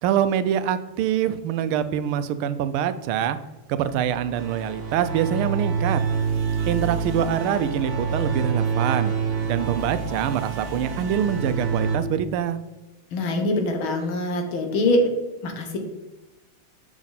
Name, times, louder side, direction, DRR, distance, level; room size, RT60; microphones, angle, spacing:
voice 1, 0.0-3.4 3.7-6.0 6.7-9.1 9.4-12.6, right 9 dB, 85° right, 12 dB, 1.4 m, -25 dB
sound 1, 3.8-12.0, right 5 dB, 50° right, 0.7 m, -27 dB
voice 2, 13.1-15.1 15.4-15.8, left 1 dB, 75° left, 4 dB, 2.0 m, -23 dB
7.3 x 6.0 x 4.0 m, 1.1 s
omnidirectional pair, 2.3 m